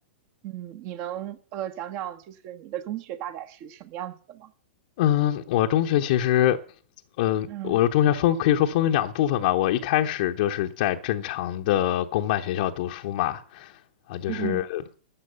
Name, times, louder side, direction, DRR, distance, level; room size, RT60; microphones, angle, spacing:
voice 1, 0.4-4.5 7.5-7.8 14.3-14.7, right 12 dB, 40° right, 1.3 m, -35 dB
voice 2, 5.0-6.6 7.2-13.7 14.1-14.8, left 12 dB, 50° left, 0.8 m, -24 dB
12.5 x 7.6 x 6.8 m
figure-of-eight pair, 105°, 6 cm